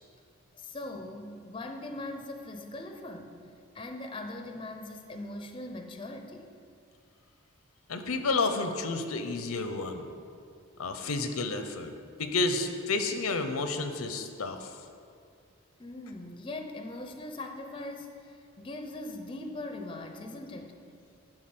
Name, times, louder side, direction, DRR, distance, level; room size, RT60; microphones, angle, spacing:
voice 1, 0.5-6.5 15.8-20.8, left 2 dB, 25° left, 5 dB, 0.6 m, -41 dB
voice 2, 7.9-10.1 10.8-11.9 12.2-14.8, left 3 dB, 85° left, 7 dB, 0.7 m, -30 dB
11.0 x 4.0 x 7.7 m, 2.4 s
head